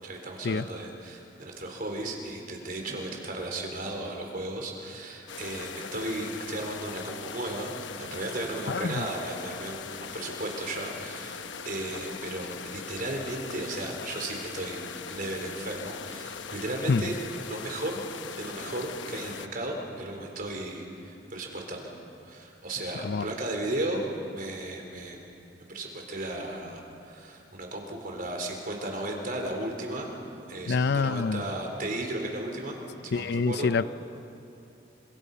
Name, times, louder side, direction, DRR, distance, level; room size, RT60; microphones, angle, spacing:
voice 1, 0.0-9.9 10.1-14.8 15.1-17.2 17.5-18.0 18.4-22.0 22.3-24.0 24.3-25.2 25.7-30.1 30.5-32.8 33.0-33.7, right 1 dB, 50° right, 2 dB, 4.2 m, -35 dB
sound 1, 5.3-19.5, left 6 dB, 75° left, 1.0 m, -40 dB
voice 2, 8.7-9.1 16.9-17.1 23.0-23.3 30.7-31.4 33.1-33.9, left 4 dB, 60° left, 15 dB, 0.5 m, -26 dB
30.0 x 25.5 x 5.6 m, 2.8 s
head